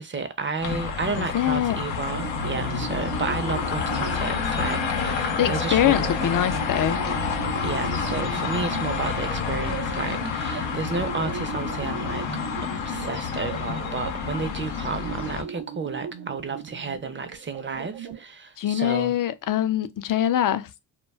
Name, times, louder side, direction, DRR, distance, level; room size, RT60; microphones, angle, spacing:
voice 1, 0.0-6.6 7.6-12.2 12.6-19.2, right 4 dB, 25° right, 0.6 m, -32 dB
sound 1, 0.6-15.4, left 6 dB, 85° left, 0.7 m, -29 dB
voice 2, 1.2-1.8 5.4-7.0 18.6-20.7, left 11 dB, 50° left, 0.5 m, -23 dB
sound 2, 2.1-18.2, right 8 dB, 70° right, 0.6 m, -37 dB
2.2 x 2.2 x 3.3 m
supercardioid pair, 45°, 44 cm